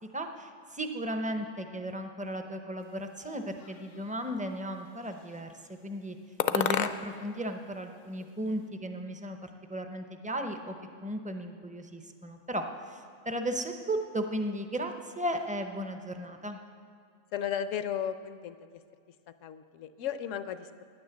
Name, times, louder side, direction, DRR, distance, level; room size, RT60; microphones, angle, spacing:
voice 1, 0.1-5.5 5.8-6.2 6.5-9.4 9.7-10.8 11.0-16.6, right 1 dB, 10° right, 6 dB, 0.4 m, -35 dB
sound 1, 3.2-4.2 4.9-5.5 6.4-7.3 7.6-8.7, left 8 dB, 60° left, 0.6 m, -34 dB
voice 2, 17.3-18.7 19.4-20.8, left 9 dB, 75° left, 12 dB, 1.0 m, -35 dB
9.9 x 9.4 x 7.9 m, 2.2 s
omnidirectional pair, 1.3 m